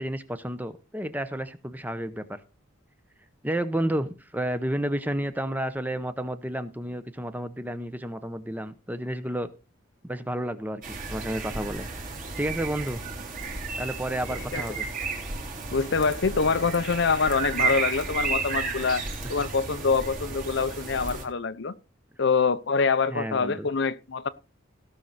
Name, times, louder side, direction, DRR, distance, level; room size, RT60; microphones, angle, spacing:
voice 1, 0.0-2.4 3.4-9.5 10.0-11.9 12.4-13.0 13.8-14.9 23.1-23.7, right 1 dB, 10° right, 0.8 m, -31 dB
sound 1, 10.8-21.2, right 4 dB, 40° right, 3.3 m, -33 dB
voice 2, 15.7-19.0 19.3-21.7 22.2-24.3, left 5 dB, 55° left, 0.6 m, -25 dB
17.0 x 6.4 x 4.1 m
head